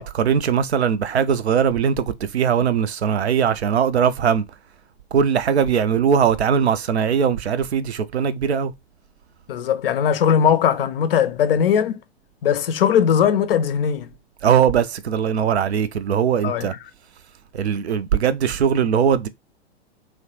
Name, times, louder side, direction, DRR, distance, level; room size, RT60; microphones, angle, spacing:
voice 1, 0.0-4.4 5.1-8.7 14.4-16.7 17.5-19.3, right 7 dB, 75° right, 0.5 m, -20 dB
voice 2, 9.5-12.0 12.4-14.1 16.4-16.8, left 8 dB, 60° left, 0.5 m, -19 dB
3.1 x 2.1 x 2.8 m
figure-of-eight pair, 105°, 33 cm